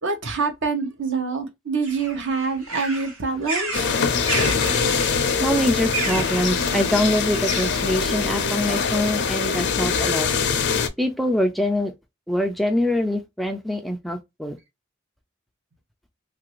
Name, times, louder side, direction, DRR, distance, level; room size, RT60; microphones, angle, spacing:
voice 1, 0.0-3.9, right 4 dB, 65° right, 0.8 m, -26 dB
sound 1, 1.8-7.9, right 3 dB, 85° right, 1.3 m, -32 dB
sound 2, 3.7-10.9, left 5 dB, 55° left, 0.5 m, -23 dB
voice 2, 5.4-10.3 11.0-11.9 12.3-14.6, left 1 dB, ahead, 0.3 m, -24 dB
3.0 x 2.5 x 2.9 m
head